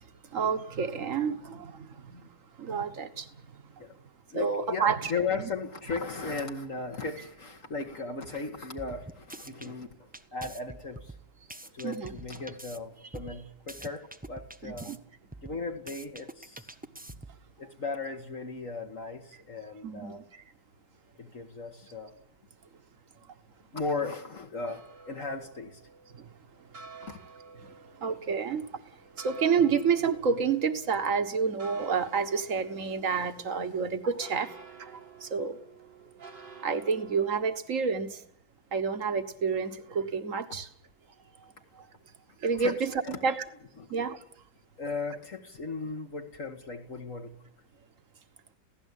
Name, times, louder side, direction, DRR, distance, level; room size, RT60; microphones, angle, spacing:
voice 1, 0.3-2.3 2.6-3.3 4.3-5.1 5.4-5.5 11.8-12.1 14.6-15.0 19.8-20.4 26.1-26.2 27.6-28.6 29.2-34.5 34.8-35.6 36.6-38.2 38.7-40.7 41.4-41.9 42.4-43.4 43.9-44.2, right 6 dB, 50° right, 1.7 m, -29 dB
voice 2, 4.3-11.1 11.7-15.0 15.4-16.7 17.6-20.2 21.2-22.1 23.7-25.8 27.0-27.2 42.6-42.7 43.0-43.2 43.8-43.9 44.8-47.4, left 4 dB, 50° left, 2.0 m, -36 dB
sound 1, 8.8-9.7 10.1-12.8 13.1-15.0 15.3-17.5, right 1 dB, 10° right, 0.5 m, -45 dB
sound 2, 24.7-37.3, right 5 dB, 80° right, 3.0 m, -51 dB
28.0 x 16.5 x 8.4 m
omnidirectional pair, 1.8 m